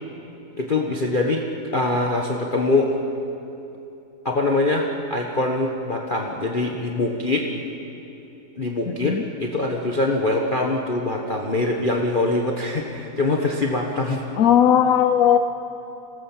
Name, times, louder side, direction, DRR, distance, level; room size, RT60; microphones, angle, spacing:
voice 1, 0.6-1.4 1.7-3.0 4.2-7.6 8.6-14.2, left 2 dB, 30° left, 0 dB, 1.3 m, -23 dB
voice 2, 14.4-15.4, left 9 dB, 60° left, 7 dB, 0.9 m, -17 dB
27.5 x 18.0 x 7.3 m, 2.8 s
omnidirectional pair, 2.1 m